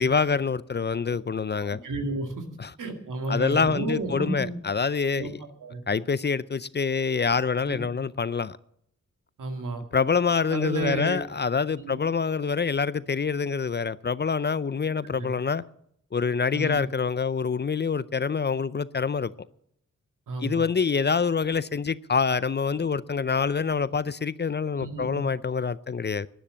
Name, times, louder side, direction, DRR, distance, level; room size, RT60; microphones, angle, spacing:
voice 1, 0.0-1.8 2.6-2.7 3.3-5.4 5.9-8.6 9.9-15.6 16.1-19.3 20.4-26.3, left 5 dB, 35° left, 0.5 m, -26 dB
voice 2, 1.6-2.4 2.8-4.6 5.2-5.8 7.7-7.8 9.4-9.8 10.5-11.2 11.8-12.0 15.1-15.3 16.5-16.9 20.3-20.7 24.8-25.3, right 2 dB, 80° right, 2.1 m, -32 dB
11.5 x 10.0 x 8.6 m
cardioid pair, 45°, 31 cm